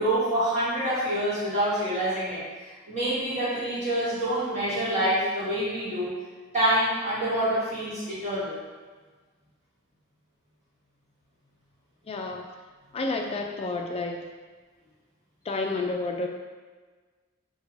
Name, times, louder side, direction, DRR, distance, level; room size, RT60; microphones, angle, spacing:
voice 1, 0.0-2.4 2.9-6.1 6.5-8.6, right 1 dB, 35° right, -11 dB, 1.5 m, -26 dB
voice 2, 12.1-12.4 12.9-14.2 15.5-16.3, left 3 dB, 30° left, 2 dB, 0.3 m, -30 dB
3.0 x 2.2 x 3.7 m, 1.4 s
head